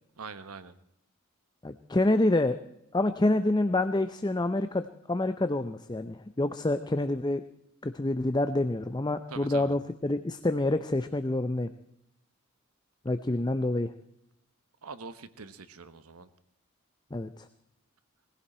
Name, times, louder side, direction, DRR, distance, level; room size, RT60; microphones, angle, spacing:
voice 1, 0.2-0.7 9.3-9.7 14.8-16.3, right 4 dB, 85° right, 12 dB, 1.1 m, -43 dB
voice 2, 1.6-2.6 2.9-7.4 7.8-11.7 13.0-13.9 17.1-17.5, left 2 dB, 20° left, 10 dB, 0.6 m, -27 dB
20.5 x 16.0 x 4.3 m, 0.78 s
head